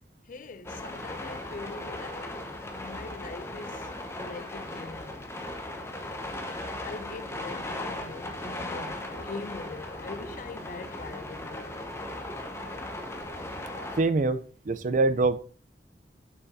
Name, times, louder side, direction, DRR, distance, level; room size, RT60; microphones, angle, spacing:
voice 1, 0.3-5.2 6.8-12.0, left 4 dB, 50° left, 0.5 m, -43 dB
sound 1, 0.6-14.0, left 1 dB, 15° left, 0.8 m, -37 dB
sound 2, 8.5-10.5 10.8-11.4 12.5-13.1 13.6-14.2, left 1 dB, 75° left, 2.6 m, -51 dB
voice 2, 14.0-14.4 14.7-15.4, right 3 dB, 45° right, 0.5 m, -24 dB
6.9 x 6.8 x 2.7 m
head